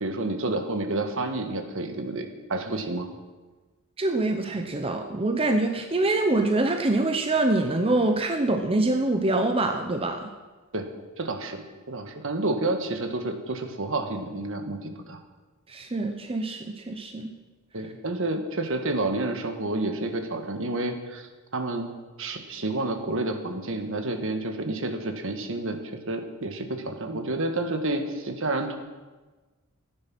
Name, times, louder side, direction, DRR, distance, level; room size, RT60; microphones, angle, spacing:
voice 1, 0.0-3.1 10.7-10.9 11.2-15.2 17.7-21.9 22.2-25.8 26.1-28.8, right 2 dB, 65° right, 6 dB, 1.5 m, -29 dB
voice 2, 4.0-10.3 15.7-17.4, right 2 dB, 25° right, 4 dB, 0.8 m, -25 dB
15.0 x 9.8 x 6.1 m, 1.3 s
head